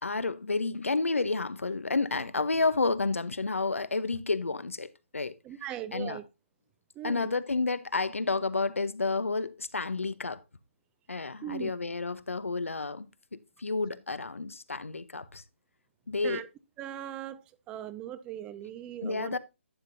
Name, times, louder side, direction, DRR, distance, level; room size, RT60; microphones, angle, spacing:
voice 1, 0.0-5.3 5.9-6.2 7.0-10.4 11.1-15.4 16.1-16.4 19.0-19.4, left 3 dB, 85° left, 0.9 m, -30 dB
voice 2, 5.4-6.2 7.0-7.3 11.4-11.7 16.2-16.5 16.8-19.4, right 11 dB, 15° right, 0.5 m, -39 dB
11.5 x 7.5 x 2.7 m
figure-of-eight pair, 150°, 7 cm